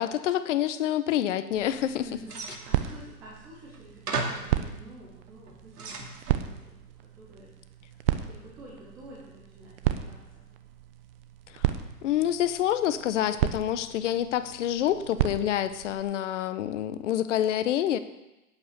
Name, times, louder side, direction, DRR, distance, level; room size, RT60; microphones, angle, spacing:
voice 1, 0.0-2.1 11.5-11.7 12.0-18.0, left 11 dB, 50° left, 13 dB, 0.9 m, -27 dB
sound 1, 1.5-16.0, right 12 dB, 40° right, 0.9 m, -34 dB
voice 2, 2.0-7.5 8.1-10.4, right 1 dB, 5° right, -5 dB, 0.4 m, -49 dB
sound 2, 2.3-3.0 3.7-3.8 4.1-4.6 5.3-6.4, right 3 dB, 70° right, 2.4 m, -35 dB
8.4 x 8.3 x 7.9 m, 1.0 s
hypercardioid pair, 130°, 47 cm